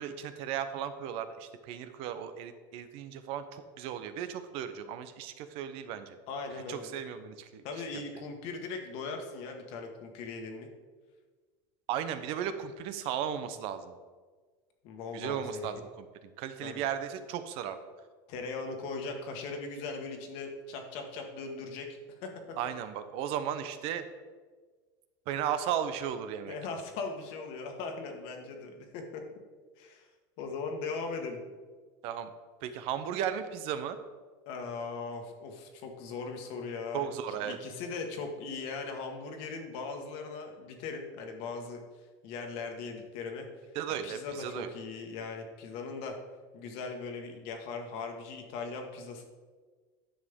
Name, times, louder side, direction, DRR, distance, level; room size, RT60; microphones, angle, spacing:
voice 1, 0.0-6.2 6.7-7.6 11.9-13.9 15.1-17.8 22.6-24.0 25.3-26.5 32.0-32.3 32.6-34.0 36.9-37.6 43.7-44.7, right 9 dB, 60° right, 10 dB, 0.8 m, -35 dB
voice 2, 6.3-6.9 7.6-10.7 14.8-15.8 16.6-16.8 18.3-22.3 26.5-29.2 29.8-30.1 30.4-31.4 34.4-41.8 42.2-43.5 44.0-46.1 46.5-49.2, left 4 dB, 60° left, 3 dB, 1.6 m, -39 dB
10.5 x 6.3 x 3.7 m, 1.4 s
supercardioid pair, 130°, 11 cm